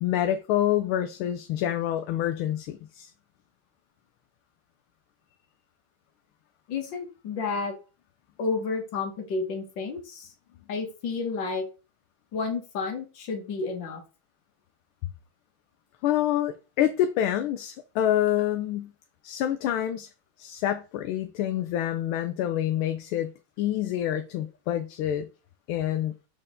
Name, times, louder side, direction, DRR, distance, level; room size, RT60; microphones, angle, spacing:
voice 1, 0.0-3.1 16.0-18.9 19.2-20.1 20.4-23.3 23.6-25.3 25.7-26.1, left 11 dB, 80° left, 1.4 m, -27 dB
voice 2, 6.7-7.8 8.4-10.3 10.7-11.6 12.3-14.0, left 4 dB, 60° left, 2.0 m, -31 dB
6.6 x 4.4 x 3.6 m
omnidirectional pair, 2.4 m